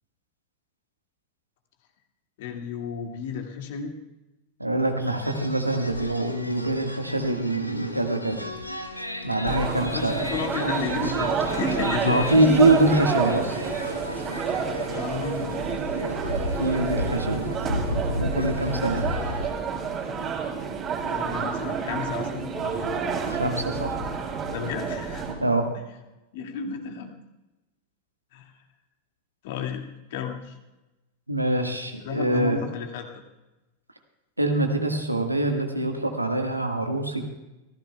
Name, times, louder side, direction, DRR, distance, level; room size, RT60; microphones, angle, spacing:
voice 1, 2.4-3.9 9.9-12.5 14.9-15.7 20.8-22.9 24.5-25.2 26.3-27.1 28.3-28.6 29.4-30.6 32.0-33.2, left 6 dB, 55° left, 3 dB, 2.1 m, -33 dB
voice 2, 4.6-8.4 9.2-10.2 12.0-13.5 16.6-17.5 18.1-19.1 23.2-24.0 25.4-25.7 31.3-32.6 34.4-37.2, right 1 dB, 85° right, 4 dB, 1.6 m, -24 dB
sound 1, 5.1-19.5, left 1 dB, 90° left, 1.1 m, -33 dB
sound 2, 9.4-25.3, right 6 dB, 30° right, 3.0 m, -29 dB
27.5 x 15.5 x 2.3 m, 1.0 s
figure-of-eight pair, 90°, 0 cm